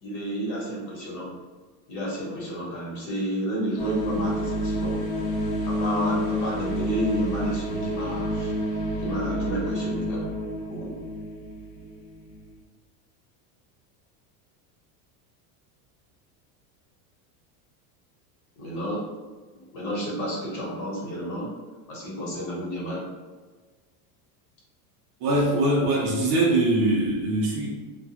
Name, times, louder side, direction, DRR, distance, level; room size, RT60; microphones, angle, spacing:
voice 1, 0.0-1.3 1.9-5.0 5.6-8.6 9.0-10.3 10.7-11.0 18.6-19.1 19.5-21.5 21.9-23.0, right 1 dB, 70° left, -5 dB, 1.2 m, -31 dB
sound 1, 3.8-12.5, equal, 45° left, 0.7 m, -29 dB
voice 2, 25.2-27.7, right 1 dB, 40° right, -3 dB, 0.4 m, -22 dB
2.3 x 2.2 x 2.8 m, 1.4 s
cardioid pair, 175°, 45 cm